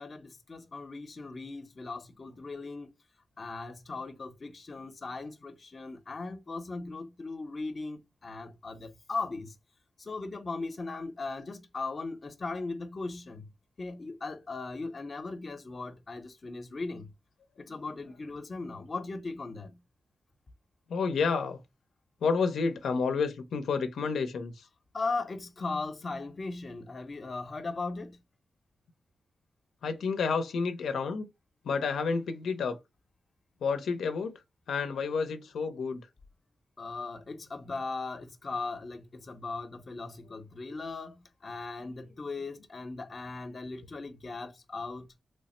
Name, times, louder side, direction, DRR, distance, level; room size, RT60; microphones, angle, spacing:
voice 1, 0.0-2.9 3.4-9.5 10.1-13.4 13.8-17.1 17.6-19.7 24.9-28.1 36.8-41.2 41.4-45.1, left 3 dB, 45° left, 0.6 m, -38 dB
voice 2, 17.7-18.2 18.7-18.8 20.9-21.6 22.2-24.7 29.8-31.3 31.6-32.8 33.6-34.4 34.7-36.1, left 5 dB, 85° left, 0.5 m, -30 dB
3.1 x 2.0 x 4.2 m
cardioid pair, 80°, 0 cm